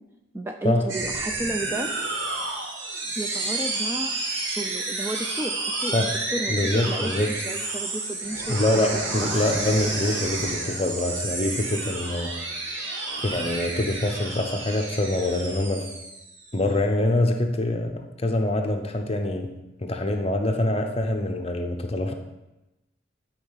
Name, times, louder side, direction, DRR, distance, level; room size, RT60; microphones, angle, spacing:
voice 1, 0.3-1.9 3.2-4.1 4.5-8.9, right 1 dB, 10° right, 4 dB, 0.4 m, -32 dB
sound 1, 0.9-16.7, right 2 dB, 70° right, 1.7 m, -30 dB
voice 2, 6.5-7.3 8.5-12.3 13.1-15.9 16.5-19.5 19.8-22.1, left 1 dB, 30° left, 4 dB, 0.8 m, -25 dB
11.0 x 4.6 x 5.7 m, 0.98 s
head